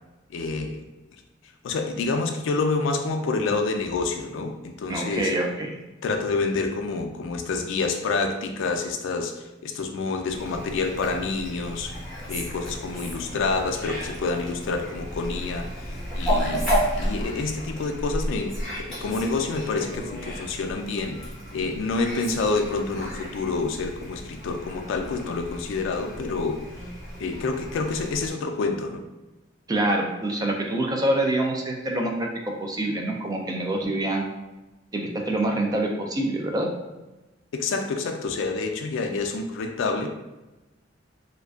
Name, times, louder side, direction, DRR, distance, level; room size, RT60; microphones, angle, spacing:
voice 1, 0.3-0.9 1.6-5.3 6.0-11.9 12.3-15.9 16.1-16.7 17.0-26.6 27.2-29.0 37.5-40.1, left 3 dB, 70° left, 4 dB, 0.3 m, -28 dB
voice 2, 4.9-5.8 29.7-32.3 32.6-34.2 34.9-36.7, right 1 dB, 20° right, 1 dB, 0.3 m, -26 dB
Fowl, 10.3-28.3, equal, ahead, 1.2 m, -33 dB
2.5 x 2.2 x 2.3 m, 1.1 s
head